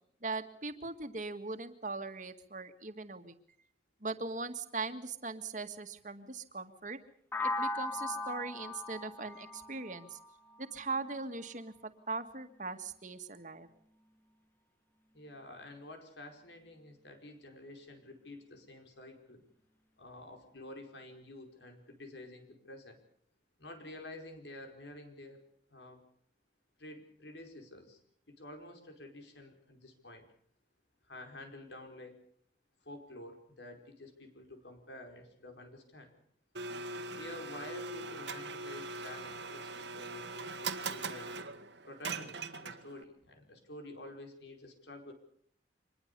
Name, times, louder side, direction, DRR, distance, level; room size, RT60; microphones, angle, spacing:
voice 1, 0.2-3.3 4.0-7.0 7.4-10.2 10.6-13.7, right 3 dB, 45° right, 8 dB, 1.9 m, -40 dB
sound 1, 7.3-11.2, left 2 dB, 10° left, 1.1 m, -38 dB
voice 2, 15.1-19.4 20.0-23.0 23.6-25.4 25.7-26.0 26.8-28.0 28.3-30.3 31.0-32.2 32.8-36.1 37.1-41.3 41.9-45.1, left 1 dB, 85° left, 5 dB, 4.8 m, -50 dB
Domestic sounds home sounds, 36.5-43.0, right 3 dB, 85° right, 1.8 m, -41 dB
25.0 x 21.0 x 6.9 m, 0.64 s
head